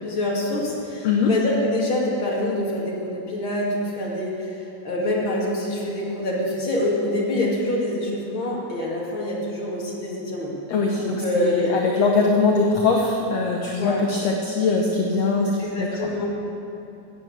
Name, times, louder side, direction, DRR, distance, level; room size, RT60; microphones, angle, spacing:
voice 1, 0.0-10.5 10.9-11.7 13.8-14.0 15.6-16.3, left 1 dB, 40° left, -5 dB, 2.9 m, -26 dB
voice 2, 10.7-15.5 15.8-16.1, left 4 dB, 65° left, 0 dB, 1.7 m, -21 dB
14.0 x 9.0 x 8.0 m, 2.7 s
omnidirectional pair, 4.0 m